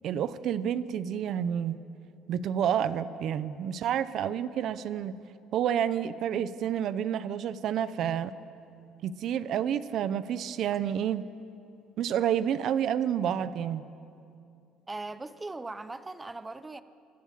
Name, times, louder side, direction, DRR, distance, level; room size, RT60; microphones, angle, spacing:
voice 1, 0.0-1.8 2.3-5.1 5.5-8.4 9.0-11.2 12.0-13.9, right 9 dB, 45° right, 14 dB, 0.8 m, -29 dB
voice 2, 14.9-16.8, right 2 dB, 10° right, 13 dB, 0.7 m, -39 dB
26.5 x 23.0 x 7.5 m, 2.6 s
cardioid pair, 175°, 0 cm